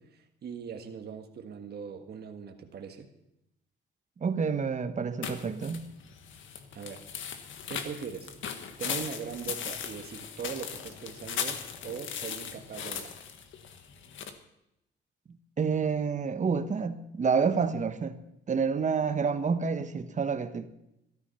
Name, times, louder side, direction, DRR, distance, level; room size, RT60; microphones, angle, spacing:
voice 1, 0.0-3.1 6.7-7.0 7.4-8.3 8.8-13.1, right 6 dB, 55° right, 1.6 m, -40 dB
voice 2, 4.2-5.9 15.6-18.2 18.5-20.7, right 5 dB, 40° right, 1.2 m, -28 dB
sound 1, 5.2-14.3, left 7 dB, 75° left, 1.6 m, -38 dB
13.5 x 13.0 x 5.7 m
cardioid pair, 90°, 20 cm